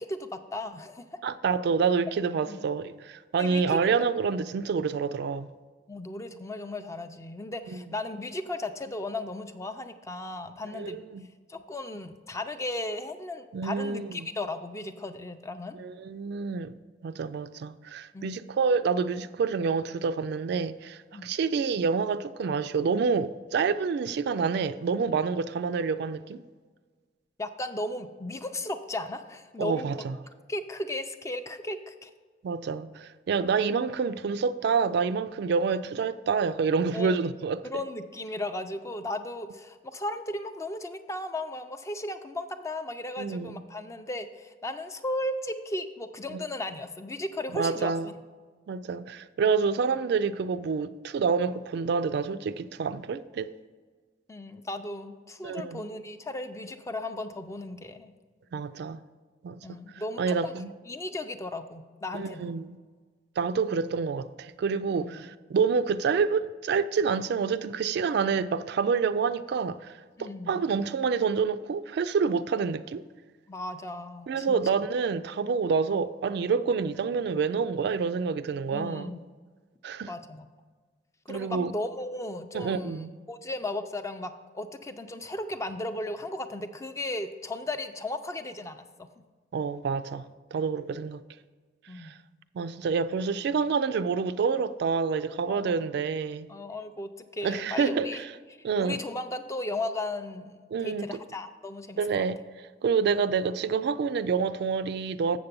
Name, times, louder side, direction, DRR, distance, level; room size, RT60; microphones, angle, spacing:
voice 1, 0.0-1.2 2.4-2.6 3.4-4.0 5.9-11.0 11.5-15.8 18.1-18.3 21.1-21.3 27.4-29.9 30.5-32.1 36.9-37.3 37.6-48.2 54.3-58.1 59.6-60.5 60.9-62.5 65.0-65.2 70.2-70.6 73.5-74.9 78.7-79.2 80.1-80.5 81.3-89.2 91.9-92.1 95.5-95.9 96.5-98.2 98.8-102.2, left 1 dB, 15° left, 0.4 m, -36 dB
voice 2, 1.2-5.5 10.7-11.2 13.5-14.2 15.7-16.7 17.0-26.4 29.6-30.1 32.4-37.6 43.2-43.6 46.3-46.4 47.5-48.1 48.7-53.5 55.4-55.8 58.5-59.0 59.4-59.8 60.2-60.7 62.1-62.8 63.4-69.9 70.2-73.0 74.3-79.1 79.8-80.1 81.3-81.7 82.5-83.1 89.5-90.2 90.5-91.2 92.0-92.1 92.5-96.5 97.4-98.2 98.6-99.0 100.7-101.1 102.0-102.4 102.8-105.4, right 5 dB, 60° right, 0.3 m, -28 dB
7.4 x 6.8 x 5.2 m
head